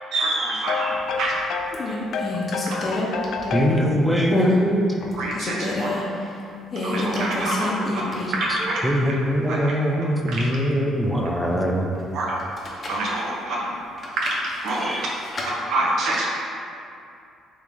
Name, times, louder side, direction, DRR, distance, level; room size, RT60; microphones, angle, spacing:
voice 1, 0.1-0.9 1.2-1.3 2.7-2.8 5.2-6.0 6.8-8.8 9.5-9.6 10.3-10.5 12.1-12.4 12.9-13.7 14.2-15.1 15.7-16.3, right 2 dB, 70° right, -4 dB, 0.8 m, -26 dB
voice 2, 0.7-3.8, left 6 dB, 70° left, 3 dB, 0.4 m, -29 dB
sound 1, 0.9-1.3 1.7-3.9 4.3-4.6 5.0-6.0 6.7-8.5 8.8-8.9 12.4-13.1 14.0-15.5, left 2 dB, 35° left, 0.7 m, -27 dB
voice 3, 3.5-5.0 8.8-11.9 14.8-15.0 15.4-15.6, equal, 5° right, 0 dB, 0.5 m, -22 dB
3.6 x 3.0 x 3.5 m, 2.5 s
cardioid pair, 85°, 0 cm